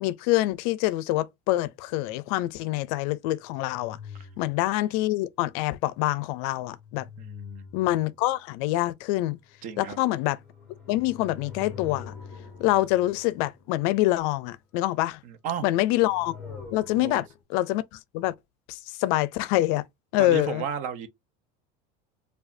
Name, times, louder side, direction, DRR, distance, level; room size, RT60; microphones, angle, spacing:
voice 1, 0.0-4.0 4.4-7.1 7.7-9.4 9.8-10.4 10.9-12.1 12.6-15.2 15.6-16.3 16.7-18.3 18.7-19.8 20.1-20.6, left 16 dB, 70° left, 0.4 m, -26 dB
sound 1, 3.4-4.9 6.3-8.6 9.3-14.4 15.6-17.4, left 6 dB, 5° left, 1.1 m, -46 dB
voice 2, 7.2-7.7 9.6-10.0 15.2-15.6 17.0-17.2 20.2-21.1, right 8 dB, 45° right, 0.6 m, -33 dB
4.8 x 2.3 x 2.5 m
cardioid pair, 170°, 19 cm